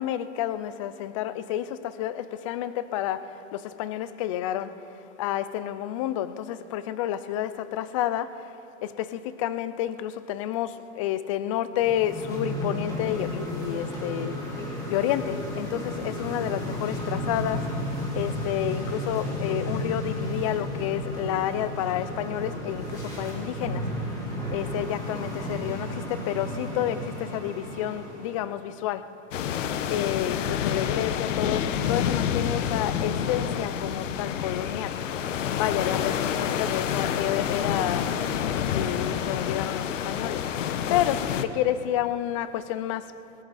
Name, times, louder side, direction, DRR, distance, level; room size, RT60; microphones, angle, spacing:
voice 1, 0.0-4.7 5.2-8.5 8.8-14.4 14.9-17.7 18.1-23.8 24.5-29.1 29.8-35.0 35.5-38.1 38.7-43.1, left 11 dB, 30° left, 0.4 m, -30 dB
sound 1, 11.8-28.4, equal, 10° left, 3.2 m, -33 dB
sound 2, 29.3-41.4, left 8 dB, 75° left, 1.1 m, -28 dB
19.5 x 18.0 x 4.1 m
supercardioid pair, 160°, 38 cm